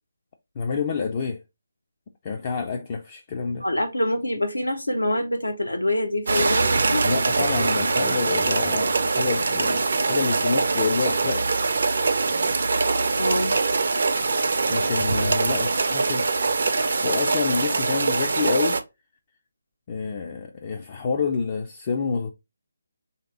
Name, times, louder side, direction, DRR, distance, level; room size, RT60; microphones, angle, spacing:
voice 1, 0.6-1.4 2.2-3.7 7.0-11.5 14.7-16.3 17.0-18.8 19.9-22.3, left 5 dB, 30° left, 0.4 m, -28 dB
voice 2, 3.6-7.1 13.1-13.5, left 1 dB, 80° left, 0.9 m, -25 dB
sound 1, 6.3-18.8, right 3 dB, 55° right, 0.5 m, -23 dB
3.2 x 2.8 x 3.8 m
figure-of-eight pair, 150°, 0 cm